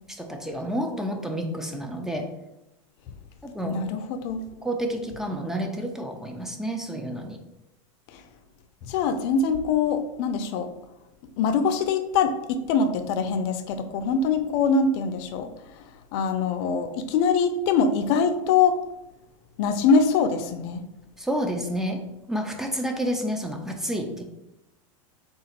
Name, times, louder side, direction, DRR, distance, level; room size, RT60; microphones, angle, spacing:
voice 1, 0.1-2.3 3.4-3.8 4.6-7.4 21.2-22.0 22.3-24.2, equal, 5° right, 3 dB, 0.5 m, -29 dB
voice 2, 3.7-4.4 8.1-8.2 8.8-10.7 11.4-15.5 16.1-18.8 19.6-20.9, left 5 dB, 55° left, 8 dB, 0.5 m, -23 dB
3.7 x 2.4 x 4.3 m, 0.92 s
supercardioid pair, 130°, 17 cm